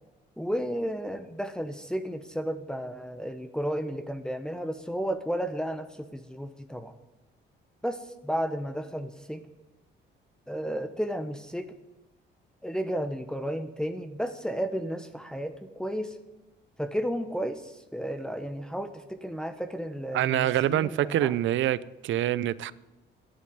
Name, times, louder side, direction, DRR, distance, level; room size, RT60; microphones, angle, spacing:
voice 1, 0.4-6.9 7.8-9.4 10.5-11.7 12.6-16.2 16.8-21.3, equal, 5° left, 1.1 m, -33 dB
voice 2, 20.1-22.7, right 12 dB, 75° right, 0.6 m, -26 dB
12.0 x 11.0 x 9.4 m
cardioid pair, 90°, 20 cm